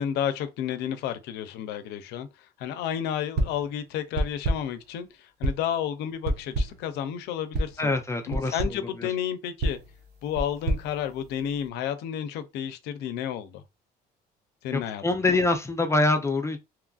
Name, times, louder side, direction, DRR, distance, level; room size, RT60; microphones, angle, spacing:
voice 1, 0.0-2.3 2.6-7.9 8.3-9.8 10.2-13.6 14.6-15.4, left 9 dB, 85° left, 0.5 m, -31 dB
sound 1, 3.4-3.7 4.2-4.8 5.4-5.8 6.2-6.9 7.5-7.8 8.3-8.8 9.6-11.7, right 1 dB, 70° right, 0.7 m, -29 dB
voice 2, 7.8-8.8 14.7-16.6, left 2 dB, 15° left, 0.5 m, -25 dB
3.0 x 2.4 x 2.3 m
cardioid pair, 110°, 17 cm